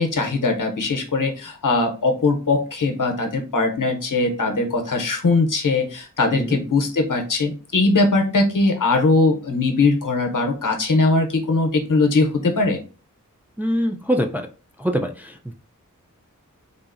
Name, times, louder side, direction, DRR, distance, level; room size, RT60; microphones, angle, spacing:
voice 1, 0.0-12.8, left 3 dB, 75° left, 3 dB, 0.7 m, -20 dB
voice 2, 13.6-14.5 14.8-15.5, equal, 5° right, 4 dB, 0.3 m, -24 dB
3.7 x 2.0 x 2.4 m, 0.35 s
wide cardioid pair, 50°, 32 cm